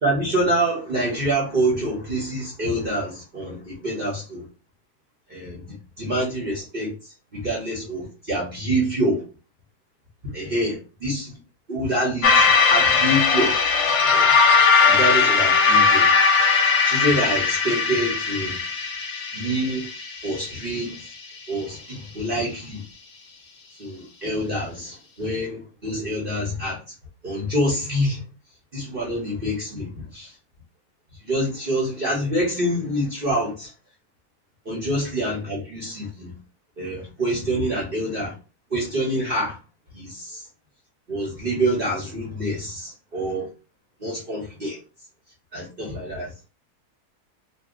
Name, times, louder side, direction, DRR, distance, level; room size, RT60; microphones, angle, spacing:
voice 1, 0.0-4.5 5.3-9.2 10.2-11.4 11.7-13.6 14.0-14.3 14.9-16.1 16.9-18.6 19.3-19.9 20.2-21.0 21.5-22.8 23.8-26.8 27.2-28.2 28.7-30.3 31.2-33.7 34.6-36.3 36.8-38.3 38.7-39.6 39.9-40.5 41.1-43.5 44.0-44.8 45.5-46.5, right 1 dB, 40° right, 0.9 m, -26 dB
sound 1, 12.2-20.7, left 5 dB, 55° left, 0.9 m, -19 dB
2.7 x 2.3 x 3.6 m
omnidirectional pair, 1.8 m